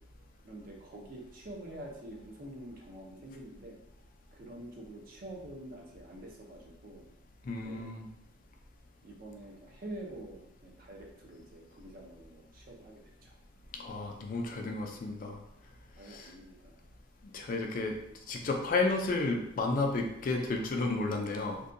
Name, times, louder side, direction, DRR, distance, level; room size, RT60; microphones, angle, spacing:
voice 1, 0.4-3.8 4.3-7.0 7.6-8.0 9.0-13.3 16.0-16.8 17.3-17.4, right 1 dB, 50° right, 0 dB, 0.5 m, -47 dB
voice 2, 7.4-8.1 13.8-15.4 16.1-16.3 17.3-18.0 18.3-21.6, left 3 dB, 45° left, 2 dB, 0.3 m, -32 dB
2.6 x 2.2 x 2.4 m, 0.79 s
head